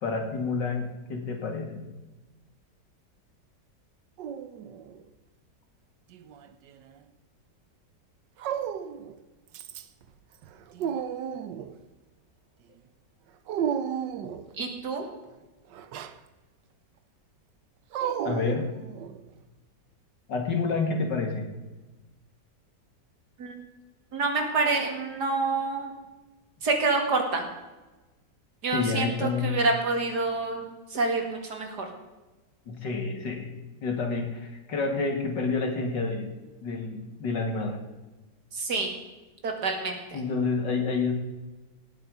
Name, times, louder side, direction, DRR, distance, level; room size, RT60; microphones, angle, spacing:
voice 1, 0.0-1.8 18.2-18.7 20.3-21.5 28.7-29.6 32.7-36.3 36.6-37.8 40.1-41.1, left 4 dB, 90° left, 3 dB, 3.0 m, -29 dB
Dog, 4.2-5.0 6.1-7.0 8.4-9.1 9.5-10.0 10.4-11.8 13.5-14.5 15.7-16.2 17.9-19.2, right 8 dB, 90° right, 1.5 m, -33 dB
voice 2, 14.6-15.1 23.4-23.5 24.1-25.9 26.6-27.5 28.6-30.6 30.9-31.9 38.5-38.9 39.4-40.2, right 3 dB, 70° right, 3 dB, 2.8 m, -27 dB
18.0 x 8.2 x 5.4 m, 1.1 s
omnidirectional pair, 1.9 m